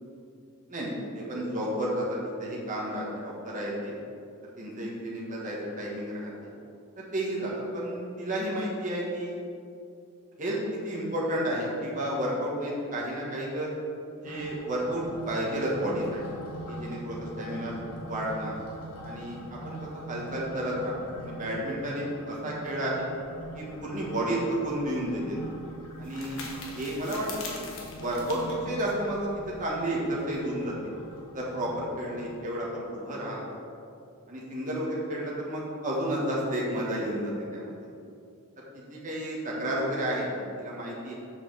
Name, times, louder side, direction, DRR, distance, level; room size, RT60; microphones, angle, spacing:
voice 1, 0.7-3.9 4.6-6.5 7.0-9.4 10.4-13.7 14.2-16.2 16.7-17.7 18.1-18.6 19.0-23.1 23.5-25.4 26.0-26.4 26.7-27.7 28.0-30.9 31.3-33.4 34.3-37.7 38.7-41.1, right 1 dB, 35° right, -4 dB, 1.5 m, -31 dB
sound 1, 14.2-32.4, right 1 dB, 85° left, 1.5 m, -43 dB
sound 2, 24.5-29.7, left 3 dB, 65° left, 1.3 m, -44 dB
7.3 x 4.8 x 6.2 m, 2.4 s
head